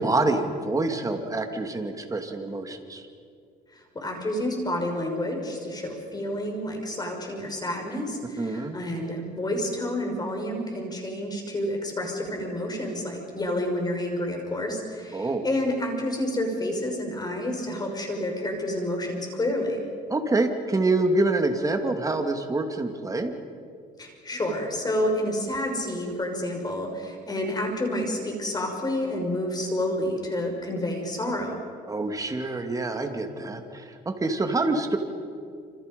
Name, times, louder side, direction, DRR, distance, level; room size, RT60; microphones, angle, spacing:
voice 1, 0.0-3.1 8.4-8.8 15.1-15.4 20.1-23.3 31.9-35.0, right 2 dB, 20° right, 5 dB, 2.5 m, -26 dB
voice 2, 3.7-19.8 24.0-31.6, left 1 dB, 25° left, 2 dB, 5.7 m, -29 dB
27.5 x 27.0 x 5.4 m, 2.3 s
cardioid pair, 110°, 17 cm